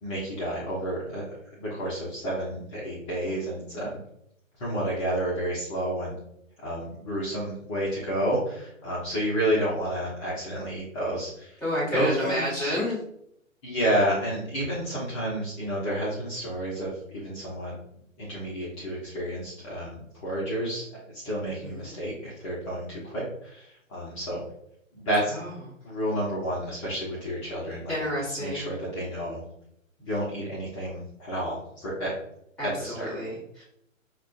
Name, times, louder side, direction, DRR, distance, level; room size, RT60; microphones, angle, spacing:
voice 1, 0.0-1.2 1.6-4.0 4.6-6.1 6.6-11.6 11.9-12.7 13.6-17.8 18.2-24.4 24.9-25.3 25.8-28.0 28.4-29.4 30.0-32.1 32.6-33.1, right 1 dB, 25° left, -7 dB, 1.0 m, -30 dB
voice 2, 11.6-13.0 21.6-21.9 27.9-28.8 32.6-33.6, left 1 dB, ahead, -10 dB, 1.2 m, -30 dB
6.3 x 2.4 x 2.6 m, 0.74 s
hypercardioid pair, 145°, 41 cm